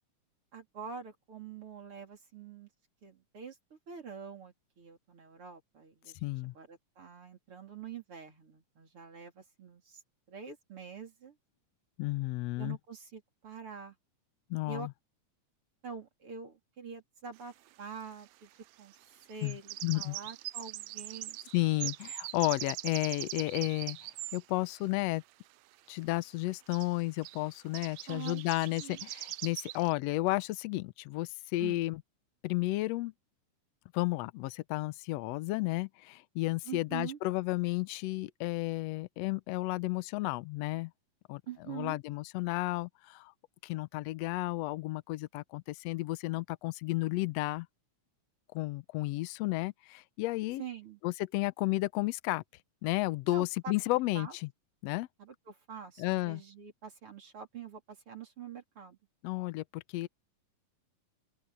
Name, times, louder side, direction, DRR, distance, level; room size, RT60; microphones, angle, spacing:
voice 1, 0.5-2.7 3.0-6.3 6.5-10.0 10.3-11.4 12.6-14.0 14.7-14.9 15.8-19.0 19.3-21.4 21.8-21.9 28.1-28.4 28.7-29.0 31.6-31.8 36.6-37.2 41.5-42.0 50.6-51.0 53.3-53.8 54.1-54.3 55.2-59.0, right 7 dB, 40° right, 4.3 m, -45 dB
voice 2, 6.2-6.5 12.0-12.8 14.5-14.9 19.4-19.6 19.8-20.2 21.5-24.0 24.3-25.2 25.9-32.0 32.4-33.1 33.9-40.9 41.3-41.4 41.7-43.3 43.6-47.7 48.5-50.6 51.0-52.4 52.8-54.5 54.8-55.1 56.0-56.4 59.2-60.1, left 19 dB, 90° left, 1.4 m, -32 dB
sound 1, 17.4-17.5 19.2-24.4 26.1-26.2 26.5-26.6 26.7-26.9 27.2-27.5 27.7-29.9, right 16 dB, 85° right, 1.5 m, -42 dB
open air
omnidirectional pair, 3.7 m